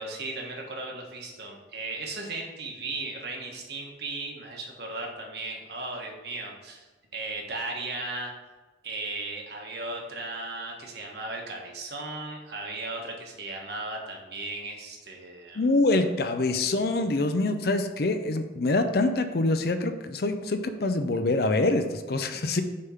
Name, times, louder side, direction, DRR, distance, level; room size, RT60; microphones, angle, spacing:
voice 1, 0.0-8.3 8.8-15.7, right 2 dB, 60° right, 0 dB, 1.3 m, -36 dB
voice 2, 15.6-22.6, left 2 dB, 55° left, 8 dB, 0.5 m, -25 dB
6.5 x 3.6 x 5.7 m, 1.2 s
head